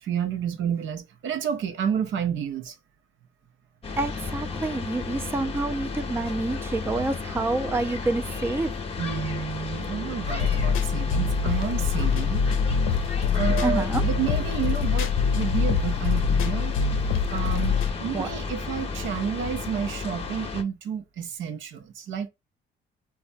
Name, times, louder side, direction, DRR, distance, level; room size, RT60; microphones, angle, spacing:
voice 1, 0.0-2.8 9.0-12.4 13.3-16.7 17.3-22.3, right 8 dB, 75° right, 0.7 m, -30 dB
sound 1, 3.8-20.6, left 4 dB, 30° left, 0.8 m, -33 dB
voice 2, 4.0-8.7 13.6-14.0 18.1-18.3, right 2 dB, 10° right, 0.4 m, -28 dB
sound 2, 10.3-17.9, left 6 dB, 90° left, 0.5 m, -24 dB
3.2 x 2.2 x 2.5 m
cardioid pair, 90°, 20 cm